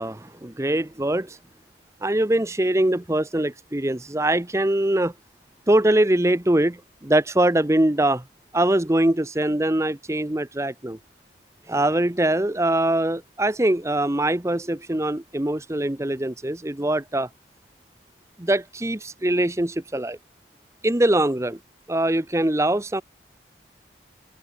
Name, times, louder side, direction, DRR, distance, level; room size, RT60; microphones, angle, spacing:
voice 1, 0.0-1.4 2.0-5.1 5.7-8.2 8.5-11.0 11.7-17.3 18.4-20.2 20.8-21.6 21.9-23.0, right 1 dB, 15° right, 0.8 m, -22 dB
head